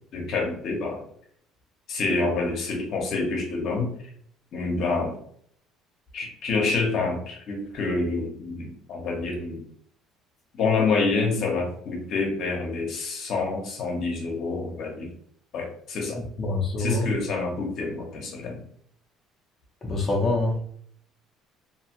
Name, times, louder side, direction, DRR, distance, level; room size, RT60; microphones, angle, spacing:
voice 1, 0.1-1.0 1.9-3.9 4.5-5.2 6.1-9.6 10.6-15.1 15.5-16.2 16.8-18.6, left 3 dB, 55° left, 1 dB, 0.8 m, -27 dB
voice 2, 16.2-17.1 19.8-20.6, left 2 dB, 25° left, -3 dB, 0.7 m, -25 dB
2.7 x 2.3 x 2.9 m, 0.63 s
cardioid pair, 125°, 0 cm